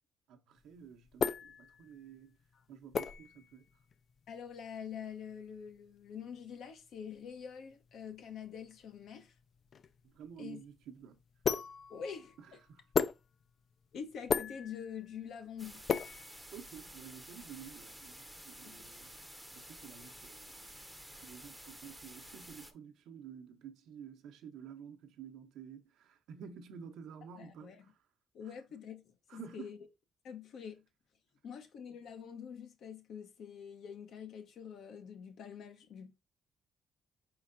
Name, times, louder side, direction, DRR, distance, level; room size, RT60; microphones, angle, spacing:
voice 1, 0.3-2.4 2.7-3.6 10.0-11.2 12.4-12.8 16.5-19.1 19.5-20.9 21.2-28.0 28.4-28.5 29.3-29.8, right 7 dB, 85° right, 0.8 m, -51 dB
sound 1, 0.6-17.0, left 6 dB, 50° left, 0.4 m, -38 dB
voice 2, 4.3-9.3 10.4-10.6 11.9-12.3 13.9-15.8 18.6-18.8 27.4-27.8 28.3-29.0 29.3-29.8 30.2-30.8 31.4-36.2, left 7 dB, 70° left, 1.0 m, -46 dB
sound 2, 15.6-22.7, right 1 dB, 5° right, 0.7 m, -51 dB
4.6 x 4.4 x 2.6 m
cardioid pair, 90°, 0 cm